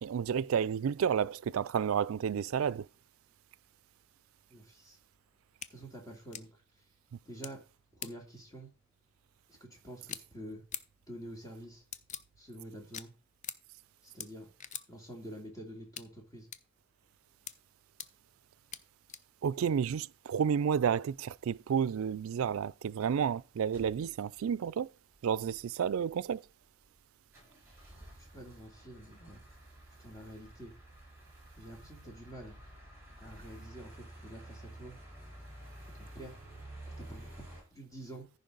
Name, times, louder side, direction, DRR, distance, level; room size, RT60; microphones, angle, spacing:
voice 1, 0.0-2.9 19.4-24.9 25.2-26.4, right 7 dB, 80° right, 0.3 m, -31 dB
voice 2, 4.5-5.0 5.7-6.6 7.2-7.6 7.9-8.7 9.5-10.6 11.1-11.8 12.4-13.1 14.0-14.5 14.9-16.5 28.3-29.4 30.0-30.7 31.6-32.6 33.2-34.9 35.9-36.4 37.0-38.3, right 1 dB, 15° left, 2.6 m, -48 dB
sound 1, 5.6-5.7 6.3-6.4 7.4-7.5 8.0-8.1 10.0-10.2 10.7-10.8 11.9-12.2 12.9-13.0 13.4-13.6 14.2-14.3 14.6-14.8 16.0-16.1 16.5-16.6 17.5-17.6 18.0-18.1 18.7-18.8 19.1-19.2 19.8-19.9, left 8 dB, 35° left, 0.5 m, -41 dB
sound 2, 21.4-21.5 22.0-22.2 22.5-22.6 22.8-23.3 23.7-24.5 24.9-25.0 25.1-25.6 26.1-27.0 27.3-37.6, right 1 dB, 10° right, 5.9 m, -51 dB
14.5 x 5.2 x 3.9 m
head